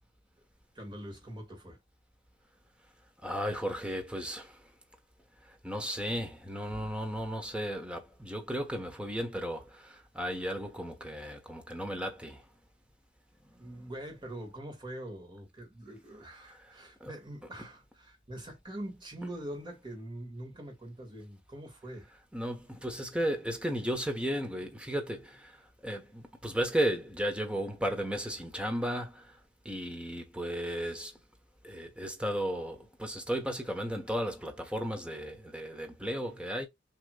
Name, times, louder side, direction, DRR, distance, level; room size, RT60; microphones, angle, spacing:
voice 1, 0.8-1.8 13.6-22.1, right 1 dB, 25° right, 2.0 m, -43 dB
voice 2, 3.2-4.5 5.6-9.6 10.1-12.4 17.0-17.1 22.3-25.4 25.8-29.2 29.6-31.1 31.6-36.7, equal, 5° right, 1.2 m, -34 dB
6.4 x 3.2 x 2.4 m
head